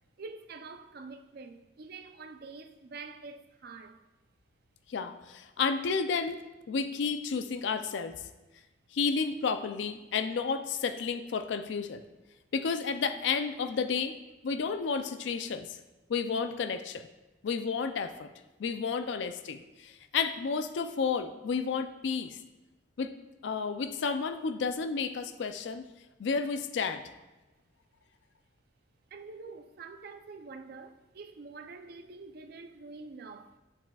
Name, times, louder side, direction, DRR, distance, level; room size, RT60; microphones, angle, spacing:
voice 1, 0.2-4.0 29.1-33.6, right 4 dB, 55° right, 0.4 m, -46 dB
voice 2, 4.9-8.2 8.9-12.0 12.5-14.2 14.4-15.7 16.1-17.1 17.4-18.3 18.6-22.4 23.0-23.1 23.4-25.8 26.2-27.0, left 5 dB, 70° left, 0.4 m, -31 dB
7.4 x 7.4 x 2.3 m
head